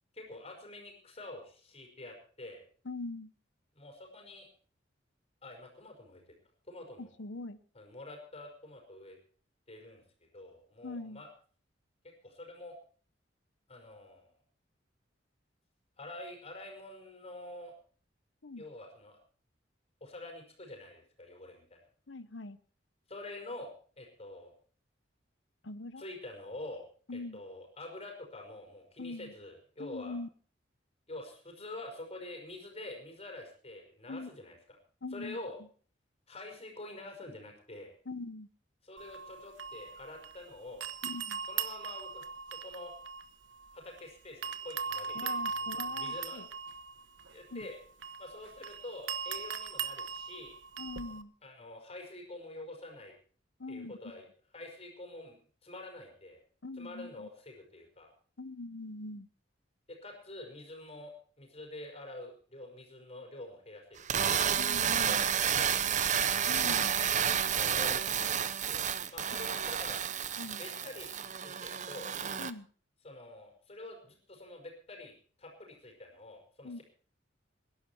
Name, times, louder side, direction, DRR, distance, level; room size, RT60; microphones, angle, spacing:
voice 1, 0.1-2.6 3.7-4.5 5.4-6.2 6.7-7.1 7.7-9.2 9.7-10.0 10.3-11.3 12.2-12.8 13.7-14.3 16.0-17.7 18.6-19.2 20.0-21.8 23.1-24.5 26.0-26.8 27.1-30.2 31.1-34.8 35.1-35.6 36.3-37.9 38.8-40.9 41.4-42.9 43.7-46.4 47.3-47.8 48.2-50.5 51.4-53.1 53.7-54.2 54.5-55.4 55.6-56.4 56.8-58.1 60.0-61.1 61.4-64.5 64.8-66.1 67.5-68.4 68.7-70.0 70.6-72.1 73.0-76.8, left 2 dB, 35° left, 2 dB, 5.4 m, -47 dB
voice 2, 2.8-3.3 7.0-7.6 10.8-11.2 18.4-18.6 22.1-22.6 25.6-26.0 27.1-27.4 29.0-29.3 29.8-30.3 34.1-34.3 35.0-35.4 38.1-38.5 41.0-41.4 45.1-46.5 47.5-47.7 50.8-51.3 53.6-53.9 56.6-57.3 58.4-59.3 64.6-65.3 66.5-66.9 70.4-70.6 72.4-72.7 76.6-76.8, left 2 dB, 80° left, 14 dB, 1.0 m, -42 dB
sound 1, 39.0-40.5 40.8-44.0 44.4-51.2, right 6 dB, 90° right, 1.0 m, -39 dB
sound 2, 64.0-72.5, right 8 dB, 40° right, 0.8 m, -30 dB
21.0 x 11.5 x 4.5 m, 0.43 s
head